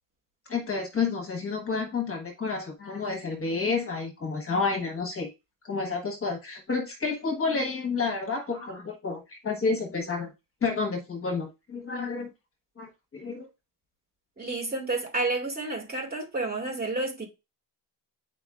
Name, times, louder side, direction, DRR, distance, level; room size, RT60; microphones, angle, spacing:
voice 1, 0.5-5.3 5.6-10.3 10.6-12.3 12.8-13.5, left 4 dB, 30° left, 1.2 m, -30 dB
voice 2, 14.4-17.2, right 2 dB, 20° right, 2.1 m, -30 dB
8.8 x 4.6 x 2.4 m
cardioid pair, 155°, 43 cm